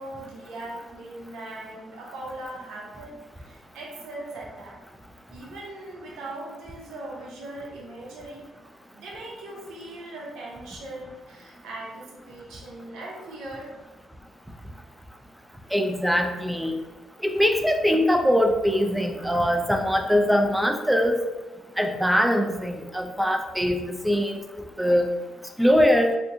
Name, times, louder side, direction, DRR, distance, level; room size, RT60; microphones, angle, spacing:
voice 1, 0.0-4.8 5.3-13.8 15.5-15.7, right 1 dB, 85° right, -3 dB, 0.7 m, -40 dB
voice 2, 15.7-16.7 17.2-21.2 21.8-24.4 24.8-25.1 25.6-26.1, equal, 5° right, 4 dB, 0.4 m, -22 dB
3.6 x 2.7 x 2.4 m, 1.2 s
cardioid pair, 90°, 0 cm